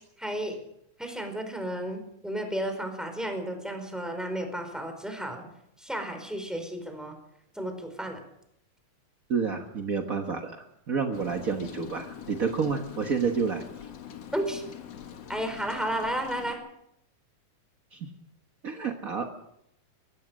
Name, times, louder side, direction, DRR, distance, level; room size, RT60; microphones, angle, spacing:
voice 1, 0.2-0.6 1.0-5.5 5.8-7.2 7.5-8.2 14.3-14.6 15.3-16.6, right 1 dB, ahead, 5 dB, 4.5 m, -33 dB
voice 2, 9.3-13.6 17.9-18.1 18.6-19.3, right 5 dB, 50° right, 3 dB, 1.0 m, -29 dB
Rain, 11.1-16.5, left 9 dB, 55° left, 2.5 m, -43 dB
23.5 x 17.5 x 6.4 m, 0.78 s
omnidirectional pair, 3.6 m